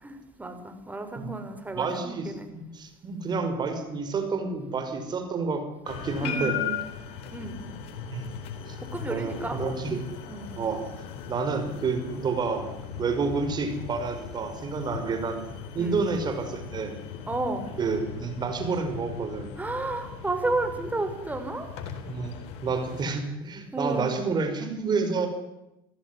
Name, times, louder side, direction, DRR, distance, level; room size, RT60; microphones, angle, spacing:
voice 1, 0.0-2.5 6.2-6.7 7.3-7.6 8.9-9.7 10.3-10.5 15.8-16.0 17.3-17.7 19.6-21.7 23.7-24.1, right 2 dB, 15° right, 7 dB, 6.2 m, -32 dB
voice 2, 1.7-6.6 8.1-8.3 8.7-8.8 9.1-10.0 10.6-10.8 11.3-12.7 13.0-15.4 15.7-17.0 17.8-19.5 22.1-22.3 22.6-25.3, right 4 dB, 35° right, 6 dB, 5.6 m, -29 dB
sound 1, 5.9-23.1, left 7 dB, 60° left, 4.1 m, -38 dB
28.0 x 16.5 x 9.9 m, 0.90 s
hypercardioid pair, 75°, 12 cm